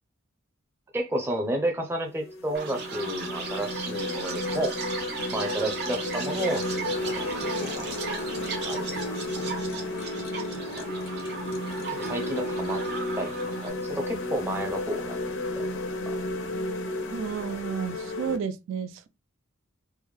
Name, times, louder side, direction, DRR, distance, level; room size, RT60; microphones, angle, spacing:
voice 1, 0.9-4.8 5.3-8.2 8.6-9.1 10.1-10.3 11.9-12.8 13.2-13.3 13.6-15.2 16.1-16.2, right 1 dB, 10° right, 0.5 m, -31 dB
sound 1, 1.4-1.6 2.2-18.4, left 2 dB, 85° left, 0.6 m, -33 dB
Chirp tweet, 2.5-13.7, right 5 dB, 50° right, 0.9 m, -36 dB
sound 2, 6.0-13.3, equal, 50° left, 0.4 m, -41 dB
voice 2, 17.1-19.1, right 7 dB, 75° right, 0.3 m, -32 dB
3.5 x 2.1 x 3.1 m
head